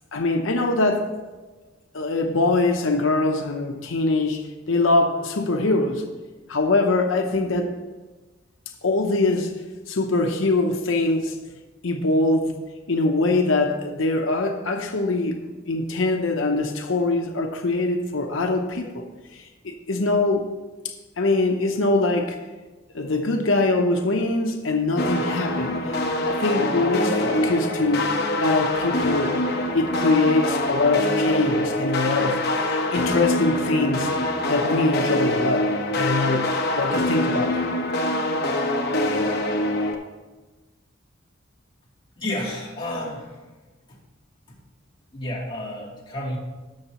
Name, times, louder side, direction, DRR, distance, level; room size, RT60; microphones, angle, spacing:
voice 1, 0.1-1.1 1.9-6.0 6.5-7.7 8.8-9.5 9.9-11.4 11.8-12.5 12.9-15.4 15.7-19.0 19.3-20.5 20.8-22.4 22.9-26.0 26.3-28.1 28.4-29.4 29.7-34.2 34.4-35.7 35.9-37.6, left 2 dB, 90° left, 3 dB, 0.8 m, -23 dB
sound 1, 25.0-39.9, left 1 dB, 55° left, 1.1 m, -24 dB
voice 2, 42.2-43.3 43.9-44.0 44.5-44.6 45.1-46.4, left 1 dB, 25° left, -6 dB, 2.8 m, -31 dB
18.0 x 6.5 x 3.0 m, 1.2 s
head